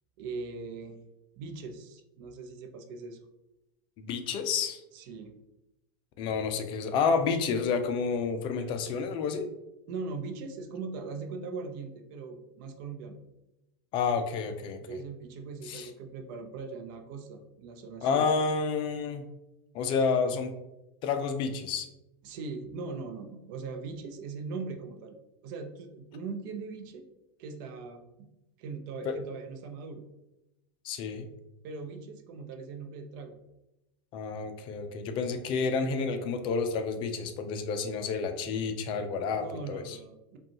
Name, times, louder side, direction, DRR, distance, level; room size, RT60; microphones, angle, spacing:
voice 1, 0.2-1.0 1.4-3.2 4.9-5.3 9.9-13.2 14.9-18.4 22.2-25.2 25.4-27.1 27.4-28.3 28.6-30.0 31.6-33.3 39.4-40.4, right 4 dB, 60° right, 5 dB, 0.7 m, -40 dB
voice 2, 4.0-4.8 6.2-9.5 13.9-15.0 15.7-15.9 18.0-19.2 19.7-20.5 21.0-21.9 29.0-29.2 30.8-31.3 34.1-40.0, left 5 dB, 40° left, 8 dB, 0.5 m, -30 dB
5.1 x 2.3 x 2.8 m, 0.92 s
supercardioid pair, 130°, 13 cm